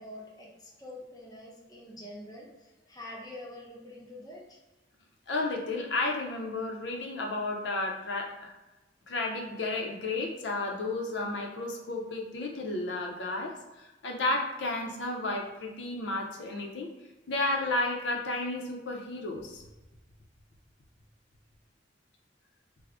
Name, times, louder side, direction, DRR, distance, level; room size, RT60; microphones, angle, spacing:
voice 1, 0.0-4.6, left 1 dB, 20° left, -3 dB, 0.7 m, -46 dB
voice 2, 5.3-8.5 9.1-16.9 17.3-19.6, left 2 dB, 80° left, 1 dB, 0.5 m, -32 dB
3.4 x 2.0 x 3.6 m, 1.1 s
head